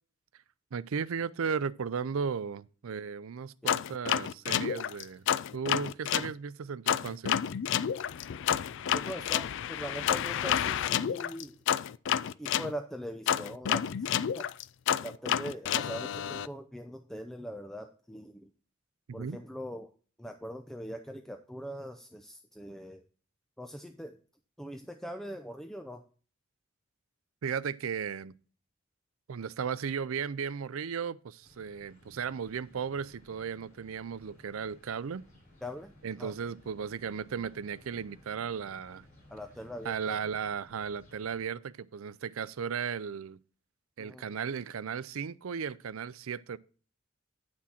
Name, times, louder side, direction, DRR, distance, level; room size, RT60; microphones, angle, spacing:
voice 1, 0.7-5.3 5.5-7.4 19.1-19.4 27.4-28.3 29.3-35.2 36.0-39.0 39.8-43.4 44.0-46.6, right 6 dB, 85° right, 0.5 m, -35 dB
sound 1, 3.7-6.3 6.9-12.7 13.3-16.5, left 9 dB, 60° left, 0.4 m, -30 dB
voice 2, 8.9-11.6 12.4-14.5 15.0-18.5 19.1-19.9 20.2-23.0 23.6-24.2 24.6-26.0 35.6-35.9 36.2-36.3 39.3-40.2 44.0-44.3, equal, ahead, 0.5 m, -42 dB
sound 2, 31.4-41.4, left 1 dB, 40° left, 4.6 m, -58 dB
9.5 x 6.1 x 4.3 m
head